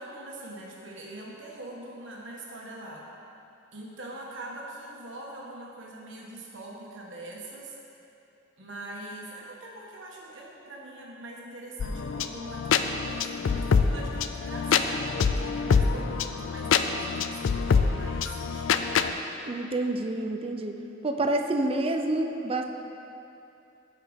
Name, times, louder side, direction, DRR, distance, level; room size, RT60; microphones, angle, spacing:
voice 1, 0.0-3.1 3.7-7.8 8.6-18.9, right 1 dB, 65° right, -3 dB, 1.5 m, -43 dB
sound 1, 11.8-19.1, left 5 dB, 75° left, 0.4 m, -26 dB
voice 2, 19.5-22.6, right 2 dB, 30° right, 5 dB, 0.5 m, -28 dB
14.5 x 5.6 x 3.6 m, 2.8 s
head